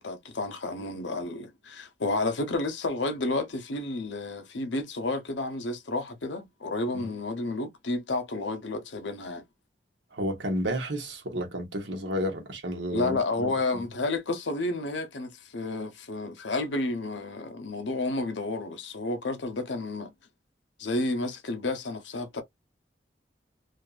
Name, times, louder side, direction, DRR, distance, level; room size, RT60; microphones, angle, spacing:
voice 1, 0.0-9.4 12.9-20.1 20.8-22.4, left 2 dB, 85° left, 0.8 m, -31 dB
voice 2, 10.1-13.9, equal, 85° right, 1.2 m, -32 dB
2.6 x 2.5 x 2.4 m
head